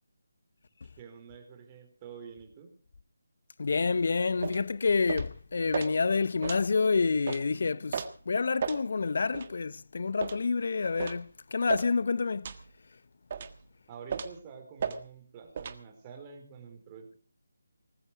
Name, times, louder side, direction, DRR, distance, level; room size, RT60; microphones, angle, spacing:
voice 1, 1.0-2.7 13.9-17.2, right 6 dB, 20° right, 4.5 m, -48 dB
voice 2, 3.6-12.5, left 4 dB, 55° left, 0.8 m, -28 dB
sound 1, 4.4-4.6 5.1-5.3 5.7-5.9 6.4-6.6 7.3-7.4 7.9-8.1 8.6-8.8 9.3-9.5 10.2-10.4 11.0-11.2 11.7-11.9 12.4-12.6 13.3-13.6 14.1-14.4 14.8-15.0 15.6-15.8, right 6 dB, 40° right, 1.6 m, -34 dB
19.5 x 15.0 x 5.0 m
figure-of-eight pair, 160°, 0 cm